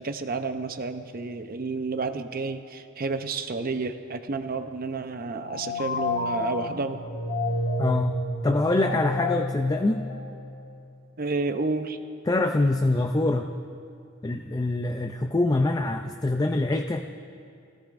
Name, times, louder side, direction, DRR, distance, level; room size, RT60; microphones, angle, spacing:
voice 1, 0.0-7.0 11.2-12.0, right 3 dB, 45° right, 8 dB, 0.7 m, -30 dB
sound 1, 5.3-10.8, left 2 dB, 85° left, 2.7 m, -30 dB
voice 2, 7.8-8.2 8.4-10.1 12.3-13.5 14.2-17.2, left 2 dB, 20° left, 4 dB, 0.4 m, -24 dB
27.5 x 17.5 x 2.6 m, 2.5 s
head